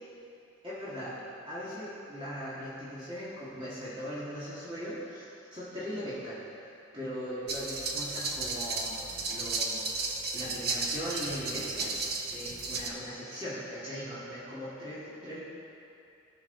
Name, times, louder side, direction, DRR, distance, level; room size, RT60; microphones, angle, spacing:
voice 1, 0.6-1.2 1.5-6.4 6.9-9.0 9.3-9.9 10.3-11.9 12.3-15.4, equal, 25° right, -10 dB, 2.0 m, -39 dB
sound 1, 7.5-12.9, right 3 dB, 50° right, 0.8 m, -34 dB
16.5 x 5.9 x 4.0 m, 2.7 s
head